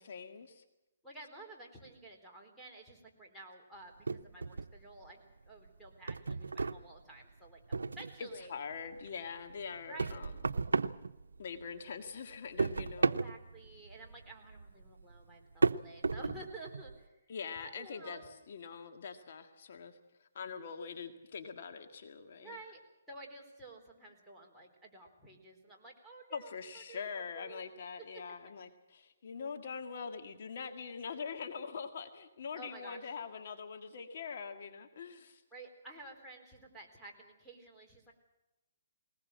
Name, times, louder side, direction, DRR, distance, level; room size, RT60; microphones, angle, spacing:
voice 1, 0.0-0.6 8.2-10.3 11.4-13.2 17.3-22.6 26.3-35.4, left 5 dB, 55° left, 6 dB, 1.9 m, -43 dB
voice 2, 1.0-8.6 9.9-10.3 13.0-17.1 17.6-18.3 22.4-22.8 23.1-27.6 28.1-28.2 32.6-33.1 35.5-38.1, right 2 dB, ahead, -4 dB, 4.0 m, -52 dB
sound 1, 4.1-5.1 5.5-8.4 8.7-11.8 12.1-17.0, right 4 dB, 90° right, 0.7 m, -35 dB
21.0 x 19.5 x 7.6 m, 0.97 s
hypercardioid pair, 150°, 0 cm